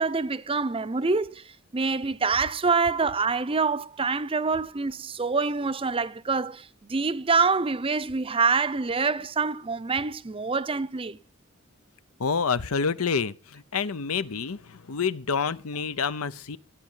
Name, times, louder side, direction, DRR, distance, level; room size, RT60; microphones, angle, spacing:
voice 1, 0.0-1.4 1.7-11.2, right 4 dB, 25° right, 0.6 m, -26 dB
voice 2, 12.2-16.6, left 5 dB, 90° left, 0.8 m, -28 dB
15.0 x 9.0 x 5.6 m
head